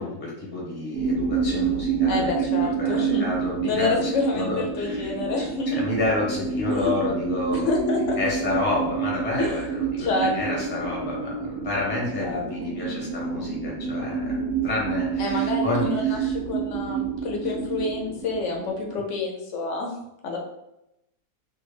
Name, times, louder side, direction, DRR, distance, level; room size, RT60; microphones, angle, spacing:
voice 1, 0.0-2.5 2.8-7.7 8.2-10.1 10.3-14.3 14.6-16.3, left 2 dB, 10° left, -4 dB, 0.5 m, -29 dB
sound 1, 0.9-19.0, right 6 dB, 70° right, 1.1 m, -28 dB
voice 2, 2.1-3.3 3.6-5.8 6.7-6.9 7.5-8.2 9.4-9.5 10.0-10.6 12.2-12.7 15.2-19.9 20.2-20.4, left 3 dB, 65° left, 0 dB, 0.8 m, -28 dB
3.3 x 2.2 x 3.3 m, 0.85 s
omnidirectional pair, 1.6 m